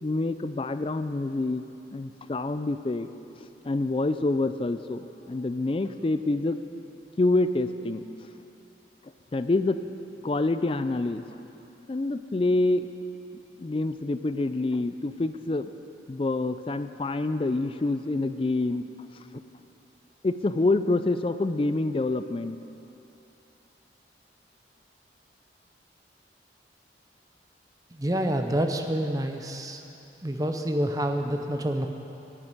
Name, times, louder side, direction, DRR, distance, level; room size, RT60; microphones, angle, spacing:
voice 1, 0.0-1.6 1.9-3.1 3.4-6.6 7.2-8.0 9.3-9.8 10.2-11.4 11.9-12.9 13.6-15.7 16.1-18.9 20.2-22.6, left 2 dB, 30° left, 11 dB, 0.3 m, -27 dB
voice 2, 28.0-29.8 30.2-31.9, right 1 dB, 20° right, 5 dB, 0.6 m, -27 dB
11.5 x 7.5 x 9.7 m, 2.9 s
head